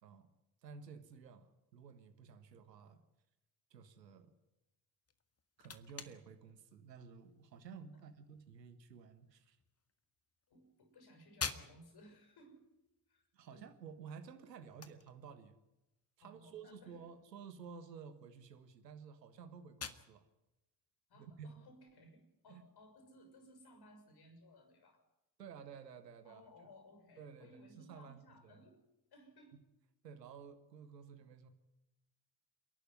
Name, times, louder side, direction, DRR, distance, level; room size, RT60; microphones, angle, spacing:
voice 1, 0.6-3.0 3.7-4.3 5.6-9.6 13.3-15.6 16.2-20.3 21.1-21.5 22.5-22.6 25.4-26.4 27.2-28.6 30.0-31.5, right 6 dB, 85° right, 9 dB, 1.6 m, -53 dB
sound 1, 5.0-22.7, left 6 dB, 30° left, 1.9 m, -52 dB
voice 2, 10.5-12.6 13.1-13.7 14.7-14.8 16.2-17.0 21.1-25.0 26.2-28.8 29.1-29.6, equal, 50° left, 7 dB, 6.5 m, -61 dB
28.5 x 11.5 x 9.6 m, 0.94 s
figure-of-eight pair, 50°, 48 cm